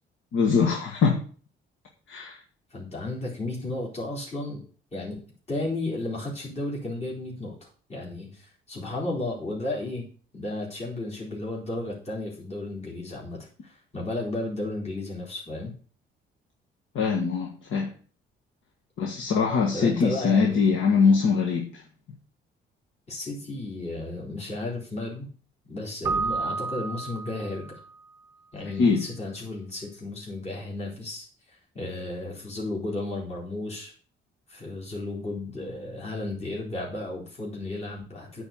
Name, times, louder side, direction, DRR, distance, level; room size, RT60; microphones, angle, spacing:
voice 1, 0.3-1.2 2.1-2.4 16.9-17.9 19.0-21.8 28.8-29.0, left 5 dB, 75° left, 1 dB, 1.5 m, -22 dB
voice 2, 2.7-4.6 4.9-5.2 5.5-15.7 19.7-21.1 23.1-25.3 25.7-27.7 28.5-33.9 34.5-38.4, left 2 dB, 35° left, -3 dB, 4.1 m, -34 dB
Keyboard (musical), 26.0-27.9, right 4 dB, 15° right, 0.6 m, -30 dB
9.0 x 4.5 x 7.1 m, 0.42 s
cardioid pair, 90°, 20 cm